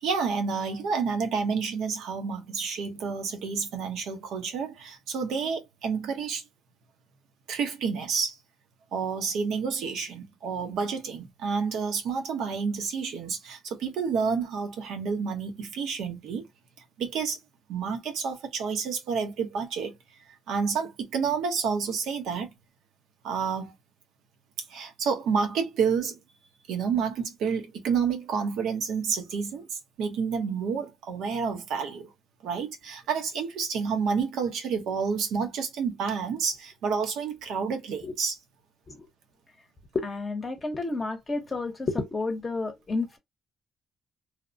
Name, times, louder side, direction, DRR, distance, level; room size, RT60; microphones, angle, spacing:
voice 1, 0.0-6.4 7.5-8.4 8.9-16.5 17.0-17.4 17.7-20.0 20.5-22.5 23.2-23.7 24.7-26.1 26.7-32.1 32.4-38.4, right 6 dB, 85° right, 0.8 m, -29 dB
voice 2, 39.9-43.2, left 3 dB, 30° left, 0.7 m, -30 dB
2.8 x 2.0 x 2.5 m
cardioid pair, 90°, 0 cm